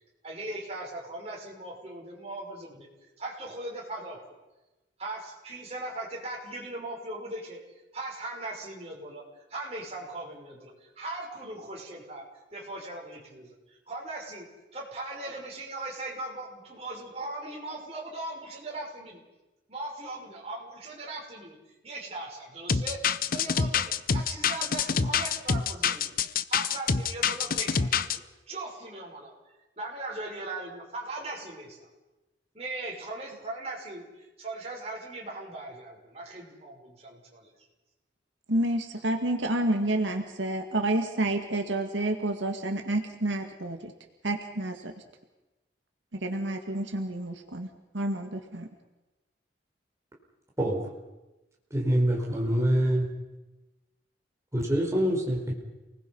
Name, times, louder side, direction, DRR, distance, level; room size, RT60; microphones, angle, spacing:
voice 1, 0.2-2.9 3.2-4.3 5.0-7.6 7.9-9.2 9.5-12.2 12.5-14.5 14.7-19.2 19.7-21.6 21.8-26.2 26.5-29.3 29.8-31.9 32.5-37.5, right 2 dB, 35° right, -2 dB, 6.1 m, -39 dB
sound 1, 22.7-28.2, left 6 dB, 50° left, 0.7 m, -26 dB
voice 2, 38.5-43.9 44.2-44.9 46.1-47.7 47.9-48.7, right 1 dB, 80° right, 4 dB, 2.0 m, -29 dB
voice 3, 51.7-53.1 54.5-55.5, equal, 15° right, -2 dB, 4.8 m, -25 dB
29.0 x 20.0 x 5.6 m, 1.0 s
head